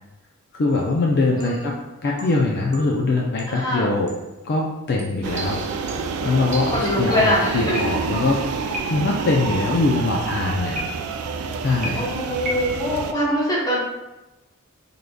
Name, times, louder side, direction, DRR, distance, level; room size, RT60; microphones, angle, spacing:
voice 1, 0.5-1.7 2.0-4.1 4.4-5.6 6.2-8.4 8.9-10.8 11.6-12.0, left 3 dB, 50° left, -1 dB, 0.3 m, -22 dB
sound 1, 0.7-0.9 1.4-1.7 2.2-3.1 3.4-3.6 4.1-4.3 5.0-7.2 7.7-8.3 8.7-9.3 10.7-11.3 11.8-12.9, equal, 30° right, 0.7 m, -35 dB
voice 2, 1.4-1.8 3.5-3.9 6.7-7.9 10.6-10.7 12.0-13.8, left 1 dB, 15° left, -5 dB, 0.8 m, -23 dB
sound 2, 5.2-13.1, right 5 dB, 85° right, 0.3 m, -28 dB
3.7 x 3.4 x 2.2 m, 1.0 s
head